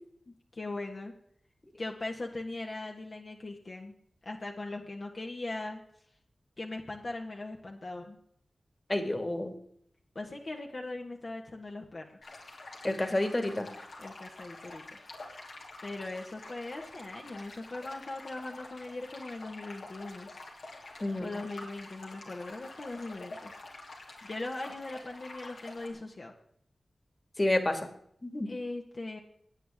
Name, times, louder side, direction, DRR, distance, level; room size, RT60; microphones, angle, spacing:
voice 1, 0.5-1.1 1.8-3.9 4.2-5.8 6.6-8.2 10.1-12.2 14.0-14.8 15.8-20.3 21.2-23.5 24.2-26.3 28.4-29.2, left 2 dB, 60° left, 0 dB, 1.6 m, -40 dB
voice 2, 8.9-9.5 12.8-13.7 21.0-21.3 27.4-27.8 28.2-28.5, left 1 dB, 30° left, 7 dB, 2.1 m, -29 dB
sound 1, 12.2-25.9, left 2 dB, 85° left, 3.0 m, -48 dB
17.5 x 9.2 x 3.7 m, 0.66 s
cardioid pair, 45°, 0 cm